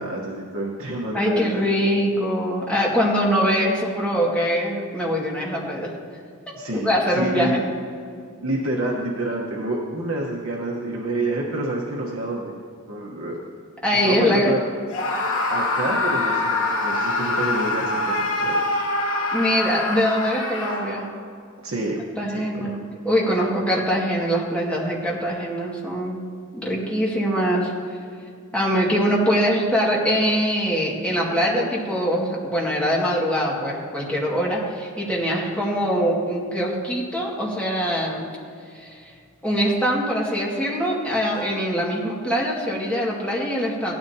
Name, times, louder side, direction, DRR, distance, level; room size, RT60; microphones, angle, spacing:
voice 1, 0.0-1.6 6.6-7.6 8.4-12.5 12.9-13.4 14.0-14.6 15.5-18.6 19.1-19.4 21.6-22.0 22.3-22.8, right 1 dB, 70° right, -2 dB, 1.2 m, -28 dB
voice 2, 1.1-5.9 6.7-7.6 13.8-14.6 19.3-21.1 22.2-22.7 23.0-26.2 26.5-27.7 28.5-38.3 38.7-39.1 39.4-43.9, equal, 5° left, -4 dB, 2.1 m, -23 dB
Screaming, 14.9-21.2, left 2 dB, 85° left, 2.4 m, -24 dB
17.5 x 13.0 x 2.8 m, 2.2 s
head